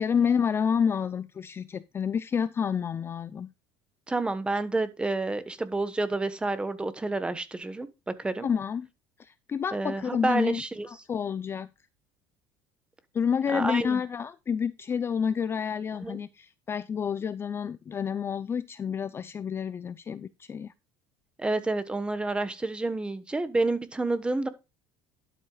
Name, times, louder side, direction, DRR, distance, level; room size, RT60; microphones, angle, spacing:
voice 1, 0.0-3.5 8.4-8.9 9.2-10.6 10.9-11.7 13.1-20.7, left 7 dB, 25° left, 0.4 m, -29 dB
voice 2, 4.1-8.5 9.7-10.9 13.5-14.0 16.0-16.2 21.4-24.5, right 2 dB, 10° right, 1.1 m, -29 dB
11.5 x 7.7 x 2.3 m
cardioid pair, 140°, 10 cm